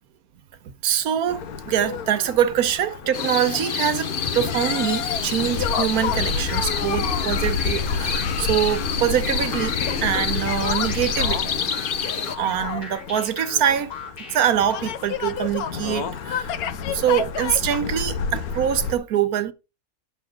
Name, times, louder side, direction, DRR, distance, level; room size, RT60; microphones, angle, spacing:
voice 1, 0.8-11.7 12.4-13.9 14.3-16.5 16.9-19.5, right 10 dB, 85° right, 1.4 m, -24 dB
sound 1, 1.3-19.0, left 6 dB, 85° left, 1.3 m, -29 dB
sound 2, 3.1-12.4, left 6 dB, 45° left, 0.7 m, -28 dB
sound 3, 5.9-15.1, left 4 dB, 70° left, 4.9 m, -38 dB
9.3 x 6.8 x 3.7 m
omnidirectional pair, 1.5 m